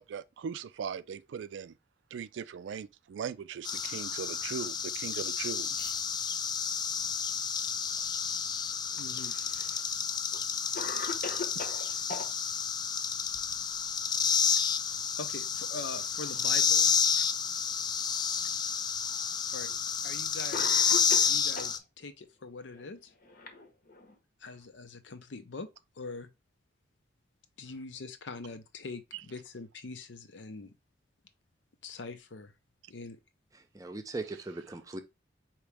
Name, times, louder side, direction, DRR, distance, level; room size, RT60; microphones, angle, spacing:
voice 1, 0.0-1.7 2.1-5.9 11.6-11.7 12.1-12.6 17.2-17.3 29.1-29.2, right 7 dB, 80° right, 0.3 m, -40 dB
sound 1, 3.6-21.8, left 6 dB, 25° left, 0.3 m, -30 dB
Cough, 8.9-9.8 10.3-10.4 10.7-12.3 14.1-14.6 14.9-15.0 15.8-16.5 17.3-17.4 18.5-18.6 19.7-19.9 20.5-21.8 22.7-24.2, left 3 dB, 50° left, 0.9 m, -40 dB
voice 2, 9.0-9.4 15.2-16.9 19.5-19.7 20.0-23.1 24.4-25.7 26.0-26.3 27.6-30.7 31.8-32.5 32.9-33.2, left 3 dB, 80° left, 0.7 m, -43 dB
voice 3, 33.5-35.0, right 2 dB, 20° right, 0.6 m, -39 dB
4.7 x 3.0 x 3.4 m
head